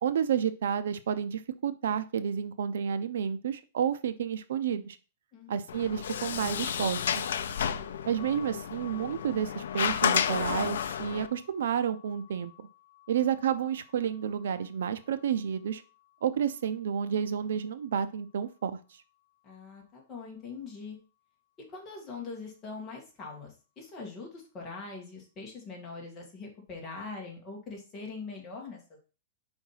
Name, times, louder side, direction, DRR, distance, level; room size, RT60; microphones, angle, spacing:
voice 1, 0.0-5.0 5.5-7.3 8.1-12.7 13.1-15.8 16.2-19.0, right 8 dB, 75° right, 12 dB, 0.5 m, -30 dB
Sliding door, 5.7-11.3, left 8 dB, 80° left, 0.5 m, -31 dB
sound 1, 8.1-19.9, left 19 dB, 30° right, 2.0 m, -56 dB
voice 2, 19.4-21.0 21.7-29.0, left 4 dB, 15° left, -1 dB, 1.6 m, -42 dB
4.8 x 4.4 x 5.6 m, 0.34 s
supercardioid pair, 180°, 0 cm